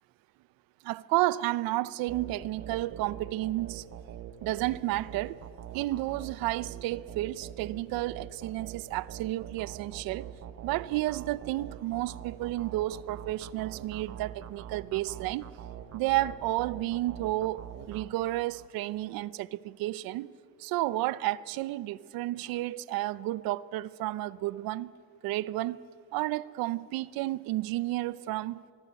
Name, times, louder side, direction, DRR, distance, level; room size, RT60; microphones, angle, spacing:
voice 1, 0.8-3.8 4.4-5.4 5.7-10.3 10.6-15.5 15.9-20.3 20.6-24.9 25.2-25.8 26.1-28.6, right 16 dB, 70° right, 0.8 m, -31 dB
sound 1, 2.1-18.7, right 9 dB, 45° right, 1.3 m, -44 dB
24.5 x 22.0 x 8.3 m
cardioid pair, 145°, 37 cm